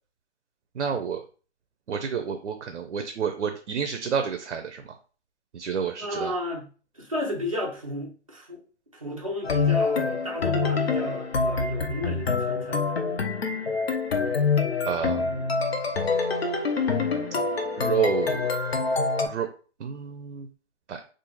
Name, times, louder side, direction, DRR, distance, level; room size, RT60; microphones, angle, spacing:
voice 1, 0.8-1.2 1.9-4.8 5.5-6.3 14.9-15.4 17.8-18.5 19.2-19.5 19.8-20.5 20.9-21.0, right 7 dB, 80° right, 6 dB, 0.5 m, -29 dB
voice 2, 6.0-6.7 6.9-8.6 8.9-12.9, left 1 dB, 30° right, -3 dB, 0.6 m, -33 dB
sound 1, 9.4-19.3, left 4 dB, 60° left, 0.6 m, -26 dB
2.4 x 2.4 x 3.1 m, 0.38 s
hypercardioid pair, 175°, 35 cm